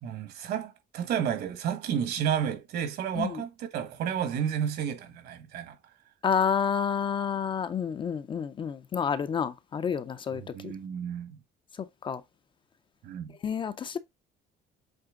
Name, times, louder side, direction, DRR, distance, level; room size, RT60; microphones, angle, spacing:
voice 1, 0.0-5.8 10.3-11.4 13.0-13.4, right 8 dB, 60° right, 1.6 m, -31 dB
voice 2, 6.2-10.7 12.0-12.2 13.4-14.0, left 7 dB, 25° left, 0.5 m, -29 dB
7.8 x 3.3 x 3.7 m
cardioid pair, 155°, 18 cm